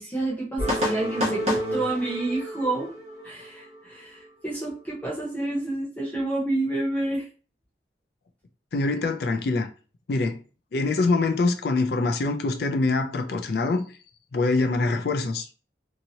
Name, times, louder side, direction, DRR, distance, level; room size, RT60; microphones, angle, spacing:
voice 1, 0.0-2.9 3.2-7.3, right 2 dB, 10° left, 0.8 m, -29 dB
sound 1, 0.6-4.3, equal, 35° right, 0.9 m, -29 dB
voice 2, 8.7-9.7 10.1-10.4 10.7-13.8 14.3-15.5, left 3 dB, 60° left, 0.4 m, -24 dB
2.8 x 2.7 x 2.7 m
head